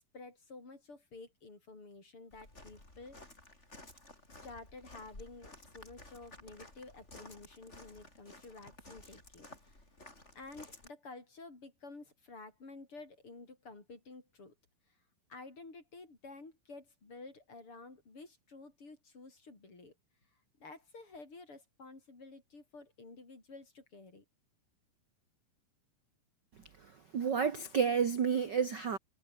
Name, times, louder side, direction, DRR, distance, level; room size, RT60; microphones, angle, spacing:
voice 1, 0.1-3.4 4.3-9.8 10.3-14.5 15.3-19.9 20.6-24.2, left 3 dB, 35° left, 6.3 m, -51 dB
Walk footsteps, 2.3-10.9, left 2 dB, 20° left, 6.3 m, -54 dB
voice 2, 26.8-29.0, right 6 dB, 55° right, 1.2 m, -31 dB
omnidirectional pair, 4.1 m